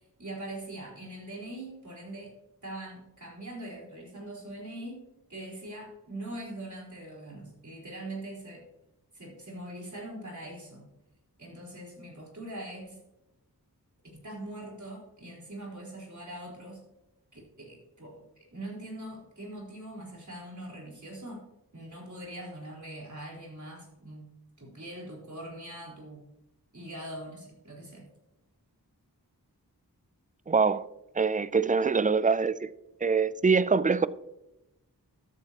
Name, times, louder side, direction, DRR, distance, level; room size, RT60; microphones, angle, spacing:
voice 1, 0.2-2.3 2.6-5.0 5.3-8.7 9.1-10.9 11.4-13.0 14.2-16.8 17.3-21.5 21.7-24.2 24.6-26.2 26.7-28.0, right 1 dB, 50° right, 4.3 m, -42 dB
voice 2, 30.5-30.9 31.2-32.7 33.0-34.1, right 5 dB, 20° right, 0.4 m, -24 dB
13.5 x 8.9 x 2.9 m
wide cardioid pair, 55°, 39 cm